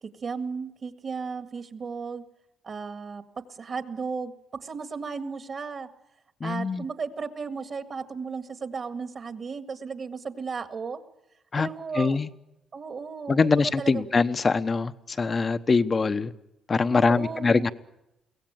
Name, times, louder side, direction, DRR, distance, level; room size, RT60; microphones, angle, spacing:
voice 1, 0.0-2.2 2.6-3.2 3.5-5.9 6.4-11.0 11.6-12.2 12.7-14.1 16.9-17.7, right 5 dB, 45° right, 9 dB, 1.9 m, -35 dB
voice 2, 6.4-6.8 11.5-11.7 11.9-12.3 13.3-16.3 16.7-17.7, left 4 dB, 35° left, 13 dB, 1.0 m, -23 dB
23.0 x 17.0 x 9.0 m, 0.87 s
cardioid pair, 90°, 0 cm